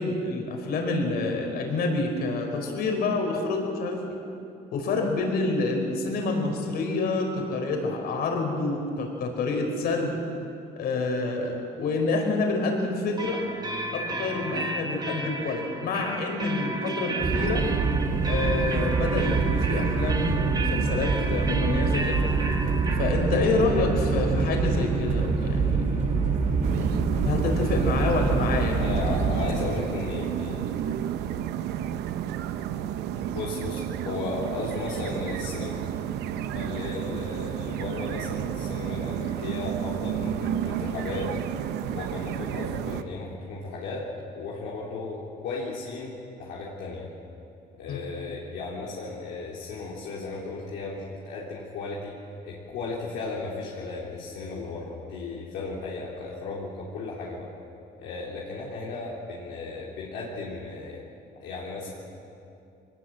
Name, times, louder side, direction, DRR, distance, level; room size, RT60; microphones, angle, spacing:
voice 1, 0.0-4.2 4.7-10.2 10.7-13.4 13.9-17.6 18.3-22.3 23.0-25.8 27.2-28.9 47.9-48.0, left 3 dB, 70° left, 2 dB, 4.8 m, -27 dB
sound 1, 13.2-26.7, right 3 dB, 25° right, 1.9 m, -34 dB
sound 2, 17.2-29.5, right 4 dB, 50° right, 2.9 m, -25 dB
sound 3, 26.6-43.0, right 10 dB, 80° right, 0.9 m, -32 dB
voice 2, 28.8-30.7 33.3-35.8 36.5-41.3 41.9-44.1 44.4-47.1 47.7-52.2 52.4-57.5 58.0-61.0 61.4-61.9, left 3 dB, 85° left, -5 dB, 3.6 m, -35 dB
22.5 x 19.5 x 7.8 m, 2.7 s
cardioid pair, 110°, 17 cm